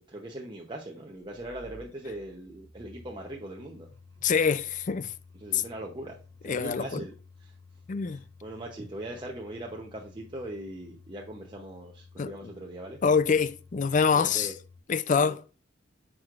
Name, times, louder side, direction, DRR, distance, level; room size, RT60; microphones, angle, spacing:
voice 1, 0.1-3.9 5.4-6.2 6.4-7.1 7.4-7.5 8.1-13.0 14.1-14.5 15.1-15.4, right 1 dB, 25° right, 0.8 m, -40 dB
sound 1, 1.1-14.8, left 3 dB, 80° right, 1.2 m, -53 dB
voice 2, 4.2-5.1 5.5-5.6 6.5-7.0 7.9-8.2 12.2-12.3 13.0-14.5 14.9-15.6, left 6 dB, 40° left, 0.4 m, -25 dB
9.2 x 6.3 x 2.5 m
head